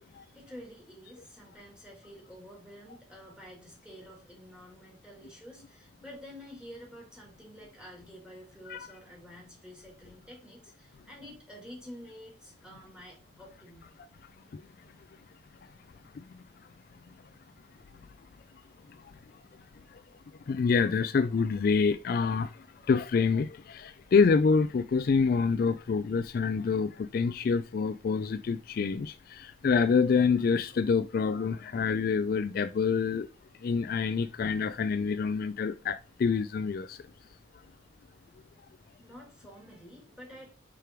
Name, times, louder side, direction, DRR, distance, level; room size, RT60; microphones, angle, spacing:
voice 1, 0.0-13.9 39.0-40.5, equal, 5° right, 2.4 m, -49 dB
voice 2, 20.5-22.5 22.9-33.3 33.6-37.0, left 5 dB, 50° left, 0.3 m, -27 dB
5.1 x 4.8 x 4.5 m
head